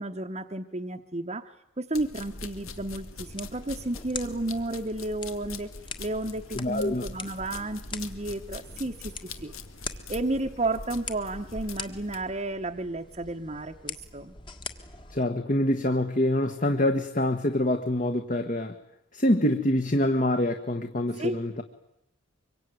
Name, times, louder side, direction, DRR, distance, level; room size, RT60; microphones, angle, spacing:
voice 1, 0.0-1.5 1.8-5.7 6.0-9.1 9.4-9.5 10.1-14.3 21.2-21.4, right 2 dB, 30° right, 2 dB, 1.0 m, -32 dB
sound 1, 1.9-12.2, left 3 dB, 90° left, 2.2 m, -43 dB
sound 2, 3.2-15.2, left 5 dB, 25° left, 1.6 m, -44 dB
voice 2, 6.5-7.1 15.1-18.7 19.1-21.6, left 1 dB, 40° left, 6 dB, 1.4 m, -25 dB
25.0 x 23.5 x 9.5 m, 0.81 s
head